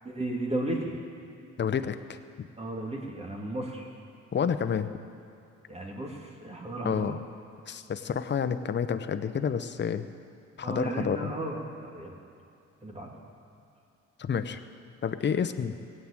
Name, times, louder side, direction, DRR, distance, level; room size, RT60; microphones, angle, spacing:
voice 1, 0.0-0.9 2.6-3.9 5.7-7.2 10.6-12.1 12.8-13.1, right 1 dB, 20° right, -1 dB, 2.8 m, -34 dB
voice 2, 1.6-2.5 4.3-4.9 6.8-7.2 7.7-10.1 10.6-11.3 14.2-14.6 15.0-15.8, left 7 dB, 35° left, 9 dB, 0.8 m, -29 dB
17.5 x 7.6 x 8.9 m, 2.6 s
cardioid pair, 90°, 30 cm